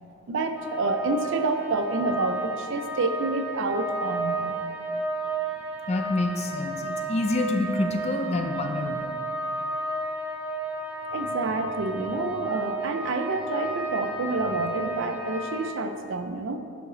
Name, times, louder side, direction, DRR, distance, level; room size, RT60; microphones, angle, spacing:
voice 1, 0.3-4.6 11.1-16.6, right 3 dB, 55° right, 7 dB, 0.4 m, -28 dB
sound 1, 0.6-15.7, right 2 dB, 5° right, 0.7 m, -32 dB
voice 2, 5.9-9.1, left 2 dB, 30° left, 5 dB, 0.4 m, -27 dB
7.1 x 4.8 x 3.9 m, 2.5 s
head